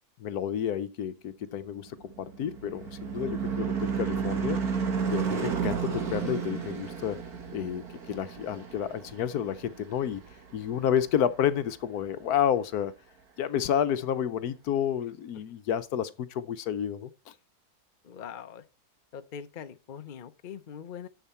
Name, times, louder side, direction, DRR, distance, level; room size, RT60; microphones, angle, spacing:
voice 1, 0.2-1.9 2.2-4.6 5.1-7.2 7.5-7.8 8.1-10.2 10.5-12.9 13.4-17.1, left 9 dB, 75° left, 1.2 m, -30 dB
Car passing by / Truck / Engine, 1.9-10.6, right 6 dB, 65° right, 2.1 m, -32 dB
voice 2, 18.0-18.6 19.1-21.1, left 8 dB, 45° left, 0.7 m, -42 dB
10.5 x 7.2 x 4.3 m
omnidirectional pair, 1.7 m